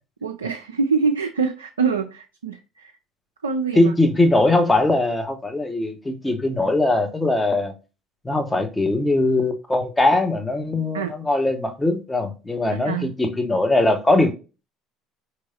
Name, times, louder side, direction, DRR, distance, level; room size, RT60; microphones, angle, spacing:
voice 1, 0.2-2.9 3.4-3.9 10.9-11.1 12.7-13.1, right 5 dB, 85° right, 0.3 m, -25 dB
voice 2, 3.7-7.7 8.2-14.3, left 2 dB, 15° left, 1.0 m, -20 dB
4.6 x 3.1 x 2.7 m
figure-of-eight pair, 60°, 0 cm